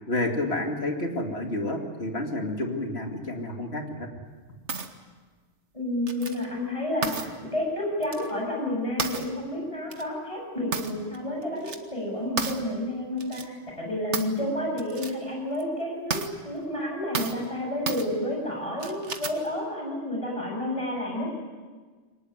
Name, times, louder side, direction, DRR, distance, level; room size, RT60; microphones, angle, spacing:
voice 1, 0.1-4.1, left 1 dB, 55° left, 3 dB, 2.8 m, -30 dB
sound 1, 4.7-4.9 6.1-6.4 7.0-7.3 8.0-8.3 9.0-9.3 9.9-10.0 10.7-11.2 11.4-11.8 12.4-12.6 13.2-13.4 14.1-14.4 14.8-15.1 15.5-15.6 16.1-16.3 17.1-17.4 17.9-18.1 18.8-19.5, right 5 dB, 70° right, 1.7 m, -32 dB
voice 2, 5.7-21.3, left 1 dB, 25° left, -1 dB, 7.7 m, -30 dB
23.0 x 19.5 x 9.7 m, 1.4 s
omnidirectional pair, 1.2 m